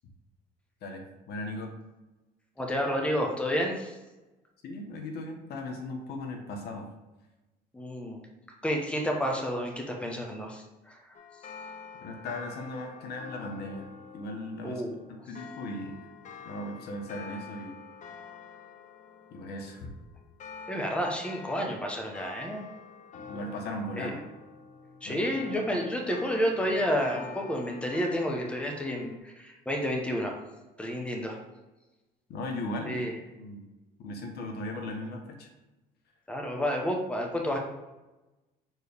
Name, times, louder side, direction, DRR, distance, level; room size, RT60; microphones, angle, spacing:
voice 1, 0.8-1.7 4.6-6.9 12.0-13.9 14.1-14.8 15.1-16.0 16.4-17.8 19.3-19.9 23.1-24.2 25.0-25.3 32.3-33.1 33.4-33.6 34.0-35.5, left 1 dB, 70° left, 3 dB, 1.2 m, -37 dB
voice 2, 2.6-3.9 7.7-8.2 8.6-11.0 14.6-14.9 20.7-22.7 24.0-24.1 25.0-30.3 30.8-31.4 32.9-33.1 36.3-37.6, equal, 5° left, 0 dB, 1.1 m, -30 dB
sound 1, 11.1-29.2, left 6 dB, 45° left, 0.7 m, -47 dB
6.3 x 4.6 x 3.5 m, 1.1 s
cardioid pair, 110°, 17 cm